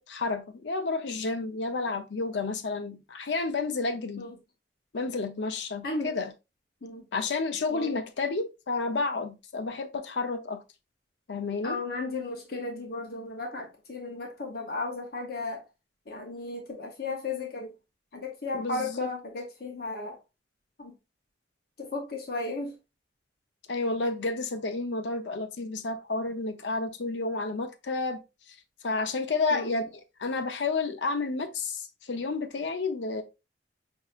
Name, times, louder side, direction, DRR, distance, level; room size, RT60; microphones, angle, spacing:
voice 1, 0.0-4.3 4.9-6.3 7.1-10.6 11.3-11.8 18.5-19.1 23.7-28.2 28.5-28.6 28.8-29.9 30.2-33.2, left 3 dB, 90° left, 0.6 m, -31 dB
voice 2, 11.6-15.6 16.1-17.7 18.1-20.2 20.8-20.9 21.8-22.7 29.5-29.7, left 3 dB, 60° left, 0.8 m, -35 dB
5.6 x 2.7 x 2.4 m
head